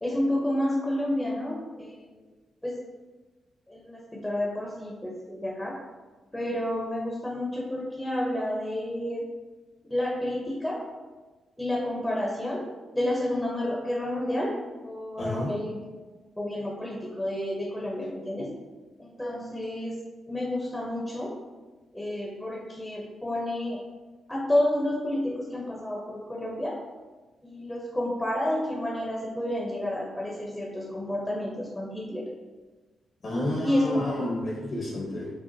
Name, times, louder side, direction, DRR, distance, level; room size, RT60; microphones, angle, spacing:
voice 1, 0.0-2.1 2.6-2.8 3.7-5.8 6.3-9.3 9.8-10.9 11.6-12.7 12.9-15.8 16.4-18.5 19.0-20.0 20.3-21.4 21.9-23.8 24.3-26.8 27.4-32.3 33.6-34.3, left 1 dB, 10° left, -3 dB, 0.8 m, -30 dB
voice 2, 15.2-15.5 33.2-35.3, left 1 dB, 50° left, -2 dB, 0.8 m, -30 dB
4.8 x 2.5 x 2.7 m, 1.3 s
supercardioid pair, 55°, 0 cm